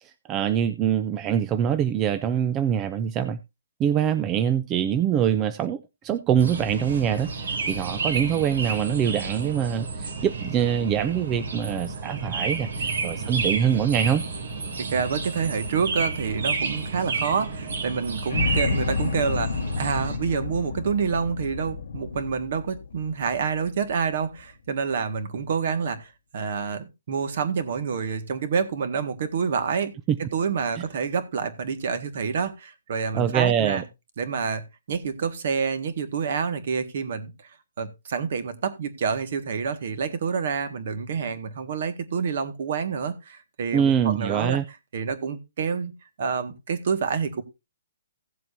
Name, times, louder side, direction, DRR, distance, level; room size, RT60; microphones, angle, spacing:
voice 1, 0.0-3.4 3.8-14.2 30.1-30.2 33.1-33.8 43.7-44.6, right 9 dB, 15° right, 0.4 m, -24 dB
sound 1, 6.4-20.2, right 4 dB, 75° right, 2.7 m, -31 dB
voice 2, 14.8-29.9 30.2-33.8 34.2-37.3 37.8-44.6 44.9-45.9 46.2-47.4, right 6 dB, 45° right, 1.7 m, -28 dB
sound 2, 18.3-24.4, left 5 dB, 65° left, 0.9 m, -30 dB
16.5 x 7.6 x 2.7 m
hypercardioid pair, 170°, 0 cm